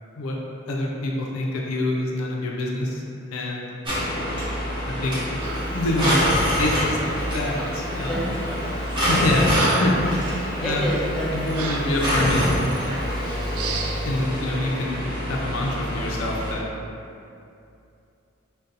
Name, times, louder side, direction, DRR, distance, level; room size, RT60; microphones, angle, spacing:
voice 1, 0.7-3.0 3.3-3.7 4.8-5.1 5.7-6.2 6.6-8.2 9.0-10.9 11.3-12.5 12.8-13.2 14.0-15.0 15.3-16.7, left 1 dB, 80° left, -1 dB, 0.4 m, -26 dB
sound 1, 3.8-16.5, equal, 25° right, 0.7 m, -26 dB
Breathing, 5.4-5.7 6.0-6.5 7.5-7.8 8.5-8.7 9.1-10.1 10.6-10.8 11.5-11.9 12.7-12.9 13.5-14.0, right 4 dB, 85° right, 0.3 m, -31 dB
voice 2, 8.1-9.1 9.4-9.6 10.6-12.4, equal, ahead, -7 dB, 0.3 m, -31 dB
2.5 x 2.2 x 3.9 m, 2.6 s
head